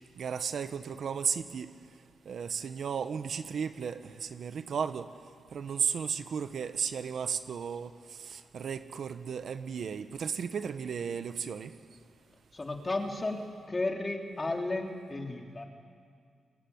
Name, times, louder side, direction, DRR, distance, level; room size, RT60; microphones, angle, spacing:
voice 1, 0.2-1.7 2.2-5.1 5.5-11.7, right 7 dB, 60° right, 10 dB, 1.2 m, -34 dB
voice 2, 12.5-15.6, left 2 dB, 20° left, 2 dB, 3.2 m, -33 dB
28.5 x 21.5 x 9.6 m, 2.1 s
cardioid pair, 115°, 0 cm